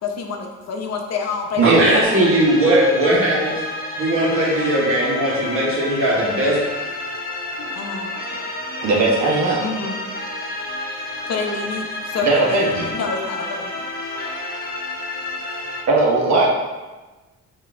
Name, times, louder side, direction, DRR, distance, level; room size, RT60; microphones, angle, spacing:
voice 1, 0.0-2.3 7.6-8.2 9.6-10.0 11.3-13.8, left 4 dB, 60° left, 2 dB, 0.7 m, -28 dB
voice 2, 1.6-3.6 4.0-6.6, right 1 dB, 45° right, -4 dB, 1.4 m, -18 dB
sound 1, 2.0-15.8, left 2 dB, 30° left, 0.9 m, -30 dB
voice 3, 8.8-9.6 12.2-12.9 15.9-16.5, right 3 dB, 65° right, -2 dB, 1.1 m, -18 dB
4.6 x 2.9 x 3.5 m, 1.2 s
cardioid pair, 90°, 30 cm